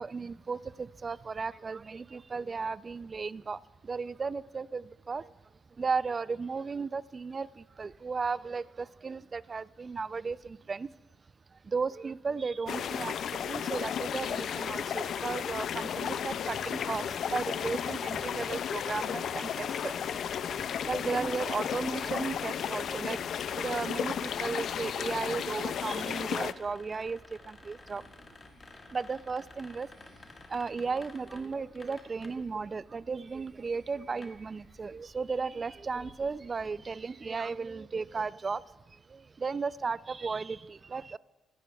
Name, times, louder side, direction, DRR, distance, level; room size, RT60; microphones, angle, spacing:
voice 1, 0.0-3.6 3.9-5.2 5.8-10.4 10.7-10.9 11.7-19.9 20.9-23.2 23.5-27.2 27.5-28.0 28.9-29.9 30.5-38.6 39.4-41.2, right 4 dB, 35° right, 18 dB, 0.3 m, -35 dB
sound 1, 12.7-26.5, left 8 dB, 65° left, 0.3 m, -34 dB
sound 2, 20.0-36.9, left 2 dB, 30° left, 1.6 m, -55 dB
sound 3, 26.8-35.1, left 2 dB, 45° left, 4.3 m, -61 dB
24.5 x 10.5 x 2.3 m, 1.2 s
cardioid pair, 90°, 0 cm